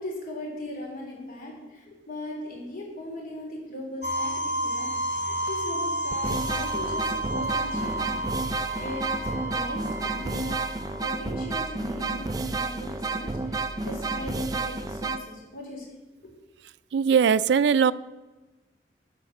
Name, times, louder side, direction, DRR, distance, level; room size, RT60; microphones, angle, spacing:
voice 1, 0.0-15.9, left 1 dB, 50° left, -2 dB, 3.7 m, -39 dB
sound 1, 4.0-11.8, right 1 dB, 75° left, 1.9 m, -31 dB
sound 2, 5.5-5.6 6.1-15.2, right 3 dB, 20° right, 0.5 m, -31 dB
voice 2, 16.9-17.9, right 7 dB, 80° right, 17 dB, 0.3 m, -20 dB
12.0 x 5.0 x 7.3 m, 1.2 s
head